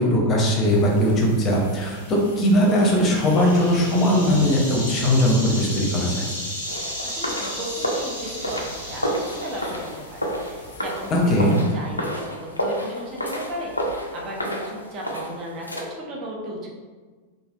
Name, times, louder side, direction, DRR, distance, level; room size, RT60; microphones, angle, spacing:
voice 1, 0.0-6.3 11.1-11.6, equal, 30° left, -2 dB, 0.7 m, -19 dB
sound 1, 0.6-11.6, equal, 85° right, 1.1 m, -35 dB
sound 2, 6.7-15.8, equal, 85° left, 0.4 m, -30 dB
voice 2, 6.7-10.2 10.5-12.2 12.5-13.7 14.1-16.7, equal, 35° right, -2 dB, 0.6 m, -35 dB
3.2 x 2.5 x 2.4 m, 1.4 s
figure-of-eight pair, 90°, 0 cm